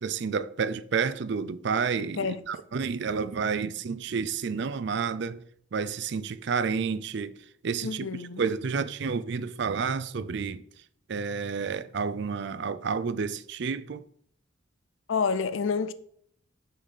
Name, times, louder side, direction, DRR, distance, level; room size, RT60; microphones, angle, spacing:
voice 1, 0.0-5.4 5.7-10.6 11.1-14.0, right 5 dB, 60° right, 0.4 m, -30 dB
voice 2, 7.8-8.4 15.1-15.9, left 5 dB, 75° left, 0.5 m, -28 dB
6.5 x 4.0 x 6.5 m
head